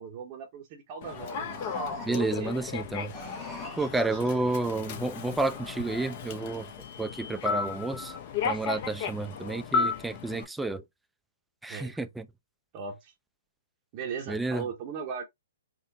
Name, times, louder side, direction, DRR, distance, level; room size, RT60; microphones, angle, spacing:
voice 1, 0.0-2.5 4.4-4.5 11.7-12.0 12.7-13.1 13.9-15.2, right 6 dB, 35° right, 0.7 m, -38 dB
Human voice / Subway metro underground, 1.0-10.4, left 5 dB, 45° left, 0.6 m, -34 dB
sound 1, 1.1-2.4 3.0-4.6, equal, 20° left, 1.3 m, -42 dB
voice 2, 2.0-3.1 3.8-6.7 7.0-8.1 8.4-10.8 11.6-12.3 14.3-14.6, right 2 dB, 5° right, 0.3 m, -30 dB
3.7 x 2.1 x 2.7 m
figure-of-eight pair, 120°, 0 cm